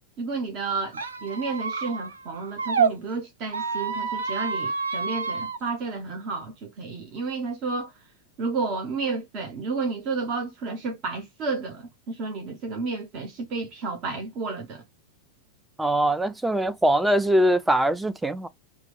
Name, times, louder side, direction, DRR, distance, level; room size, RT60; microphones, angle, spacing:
voice 1, 0.2-7.9 8.4-14.8, right 4 dB, 40° right, 0.7 m, -31 dB
Squeak, 0.9-2.9 3.5-5.6, right 5 dB, 70° right, 0.5 m, -28 dB
voice 2, 15.8-18.5, right 1 dB, 5° right, 0.4 m, -22 dB
2.9 x 2.1 x 3.6 m
figure-of-eight pair, 90°, 0 cm